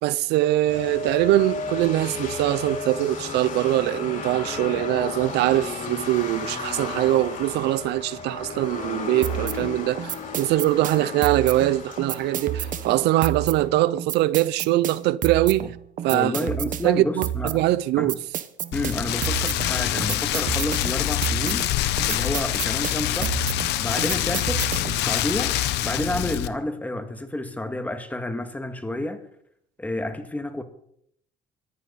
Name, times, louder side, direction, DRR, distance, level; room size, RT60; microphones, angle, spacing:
voice 1, 0.0-15.7 16.0-16.3 16.8-18.2, right 15 dB, 85° right, 0.6 m, -22 dB
sound 1, 0.7-13.7, left 4 dB, 50° left, 5.2 m, -34 dB
sound 2, 9.2-25.1, right 11 dB, 50° right, 1.1 m, -31 dB
voice 2, 16.1-17.6 18.0-18.2 18.7-23.4 23.8-25.6 25.8-29.2 29.8-30.6, left 1 dB, 10° left, 2.0 m, -30 dB
Rain, 18.7-26.5, left 14 dB, 85° left, 1.0 m, -25 dB
20.5 x 14.5 x 4.2 m
cardioid pair, 110°, 17 cm